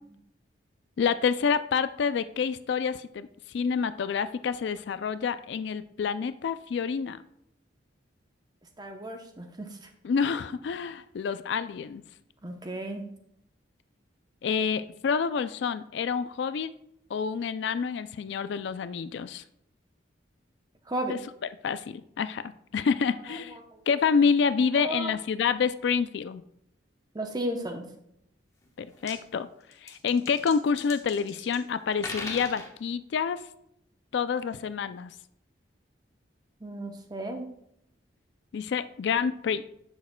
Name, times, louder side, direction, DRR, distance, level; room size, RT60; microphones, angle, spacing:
voice 1, 1.0-3.3 3.5-7.2 10.0-12.0 14.4-16.7 17.1-19.4 21.1-21.2 21.6-23.6 23.9-26.4 28.8-29.5 29.8-33.4 34.1-35.1 38.5-39.6, left 6 dB, 65° left, 13 dB, 0.3 m, -28 dB
voice 2, 8.8-9.7 12.4-13.1 20.9-21.2 23.7-23.8 24.8-25.1 27.1-27.8 36.6-37.5, right 1 dB, 20° right, 4 dB, 0.7 m, -34 dB
sound 1, 28.6-28.7 28.9-29.2 29.7-31.6 31.9-32.7, left 2 dB, 15° left, 1.1 m, -39 dB
10.5 x 7.2 x 2.2 m, 0.76 s
head